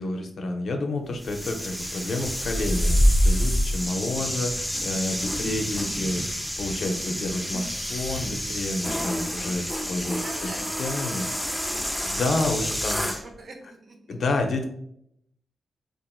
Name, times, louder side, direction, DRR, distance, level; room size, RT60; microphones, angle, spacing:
voice 1, 0.0-6.2 6.6-9.6 9.9-10.2 10.8-11.3 12.0-13.1 14.1-14.6, left 2 dB, 70° left, 5 dB, 0.4 m, -29 dB
sound 1, 1.2-13.2, equal, ahead, 0.4 m, -27 dB
voice 2, 10.0-12.3 12.6-14.2, right 2 dB, 65° right, 2 dB, 0.6 m, -46 dB
2.9 x 2.3 x 2.2 m, 0.72 s
supercardioid pair, 40°, 0 cm